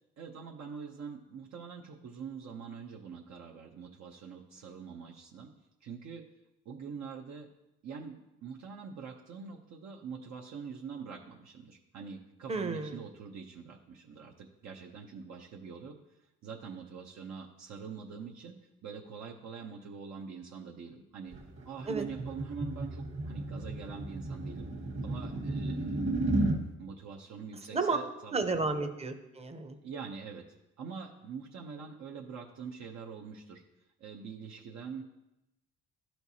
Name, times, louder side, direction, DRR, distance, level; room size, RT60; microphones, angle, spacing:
voice 1, 0.2-5.5 5.8-6.2 6.7-7.5 7.8-16.0 16.4-18.6 18.8-21.3 21.7-24.7 25.0-26.1 26.8-28.4 29.8-30.4 30.8-33.6 34.0-35.0, right 6 dB, 60° right, -1 dB, 0.7 m, -44 dB
voice 2, 12.5-13.0 21.9-22.0 27.7-28.0 28.3-29.8, right 3 dB, 20° right, 7 dB, 0.8 m, -32 dB
sound 1, 21.3-26.6, right 2 dB, 40° right, 1.3 m, -33 dB
12.0 x 4.4 x 2.8 m, 0.93 s
cardioid pair, 90°, 30 cm